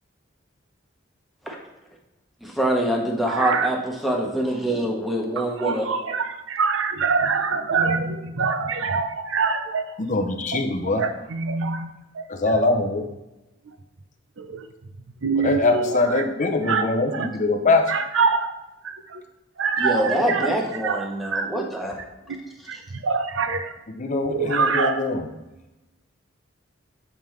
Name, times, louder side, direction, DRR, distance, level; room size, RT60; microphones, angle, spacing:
voice 1, 2.4-5.9 19.8-22.0, right 1 dB, ahead, 0 dB, 1.0 m, -25 dB
voice 2, 3.3-3.7 5.4-9.8 10.5-10.6 10.9-12.3 12.6-12.7 14.4-14.7 15.2-16.2 16.7-16.8 17.1-17.3 17.9-18.5 18.8-19.2 19.6-20.6 20.8-21.5 22.4-23.7 24.3-25.0, right 5 dB, 80° right, 8 dB, 0.6 m, -25 dB
voice 3, 10.0-11.0 12.3-13.1 15.4-18.0 23.9-25.3, left 3 dB, 40° left, 6 dB, 0.7 m, -23 dB
7.3 x 5.2 x 3.2 m, 0.98 s
head